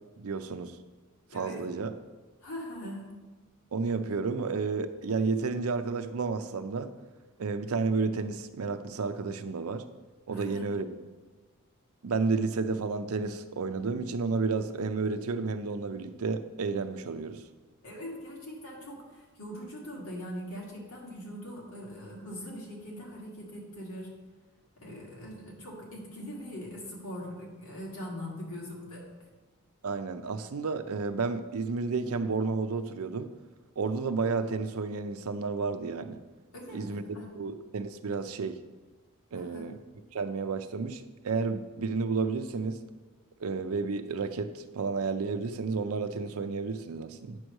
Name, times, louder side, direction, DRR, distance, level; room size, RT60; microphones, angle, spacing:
voice 1, 0.2-0.8 1.3-2.0 3.7-6.9 7.4-9.9 10.3-10.9 12.0-17.4 29.8-33.3 33.8-36.2 36.7-37.0 37.3-38.6 39.3-39.8 40.1-42.8 43.4-47.4, right 4 dB, 70° right, 10 dB, 0.5 m, -31 dB
voice 2, 1.3-1.6 2.4-3.1 10.3-10.7 17.8-24.1 24.8-29.0 36.5-37.3 39.3-39.7, equal, 70° left, -3 dB, 2.1 m, -41 dB
9.0 x 3.1 x 6.3 m, 1.3 s
head